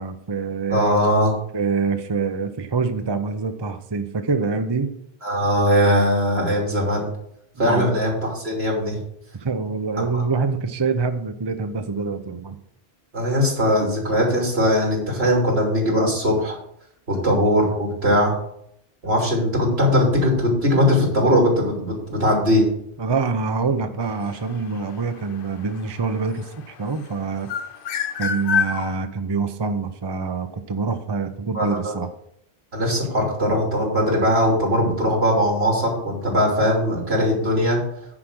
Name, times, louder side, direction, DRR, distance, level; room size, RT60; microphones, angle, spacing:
voice 1, 0.0-0.8 1.5-4.9 7.7-7.9 9.4-12.6 23.0-27.5 28.2-32.1, right 4 dB, 30° right, 8 dB, 0.6 m, -25 dB
voice 2, 0.7-1.4 5.2-7.1 7.6-9.0 10.0-10.2 13.1-16.6 17.1-18.4 19.0-22.7 31.5-32.0 32.7-37.8, equal, 75° right, -1 dB, 3.2 m, -20 dB
sound 1, 24.0-26.9 27.3-28.9, left 7 dB, 65° left, 0.8 m, -27 dB
9.9 x 5.1 x 6.1 m, 0.71 s
omnidirectional pair, 1.1 m